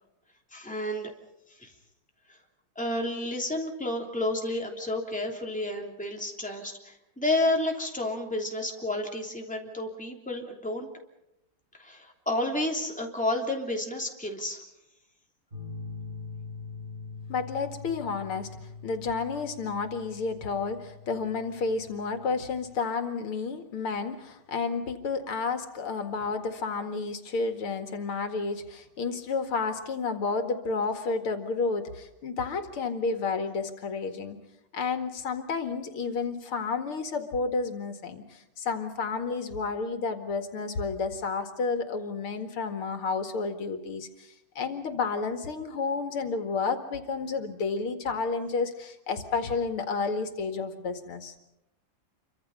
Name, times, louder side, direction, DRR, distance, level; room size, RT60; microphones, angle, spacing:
voice 1, 0.5-1.1 1.6-1.7 2.7-10.9 11.8-14.6, left 1 dB, 5° left, 0 dB, 3.0 m, -31 dB
sound 1, 15.5-22.8, left 4 dB, 30° right, 7.6 m, -43 dB
voice 2, 17.3-18.5 18.8-34.4 34.7-51.3, left 4 dB, 85° left, 6 dB, 2.8 m, -31 dB
28.0 x 24.5 x 5.6 m, 0.85 s
omnidirectional pair, 2.3 m